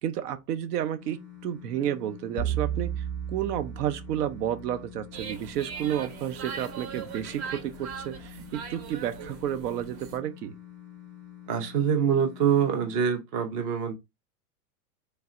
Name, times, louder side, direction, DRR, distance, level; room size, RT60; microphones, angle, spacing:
voice 1, 0.0-10.5, right 11 dB, 80° right, 0.7 m, -31 dB
sound 1, 1.0-13.0, left 12 dB, ahead, 0.8 m, -47 dB
sound 2, 2.4-4.8, right 9 dB, 35° left, 0.5 m, -33 dB
sound 3, 5.1-10.2, right 7 dB, 50° right, 0.9 m, -40 dB
voice 2, 11.5-13.9, right 7 dB, 25° right, 0.3 m, -25 dB
3.2 x 2.7 x 2.4 m
supercardioid pair, 140°, 46 cm